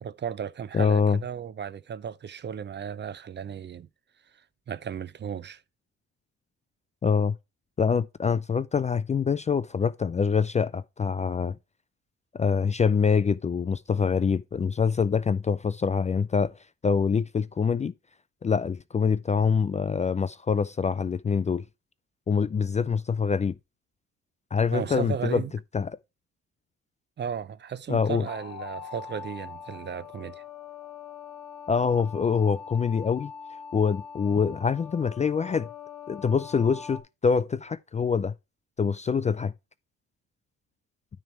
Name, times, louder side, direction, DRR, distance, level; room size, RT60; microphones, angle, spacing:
voice 1, 0.0-3.9 4.3-5.6 24.7-25.5 27.2-30.4, right 8 dB, 35° right, 0.5 m, -35 dB
voice 2, 0.7-1.2 7.0-7.4 7.8-11.6 12.3-16.5 16.8-17.9 18.4-21.6 22.3-23.5 24.5-25.4 25.7-25.9 27.9-28.3 31.7-33.3 33.7-35.7 36.1-38.3 38.8-39.5, left 6 dB, 25° left, 0.3 m, -25 dB
sound 1, 28.3-37.0, left 7 dB, 60° left, 1.4 m, -42 dB
9.4 x 3.4 x 5.7 m
cardioid pair, 90°, 30 cm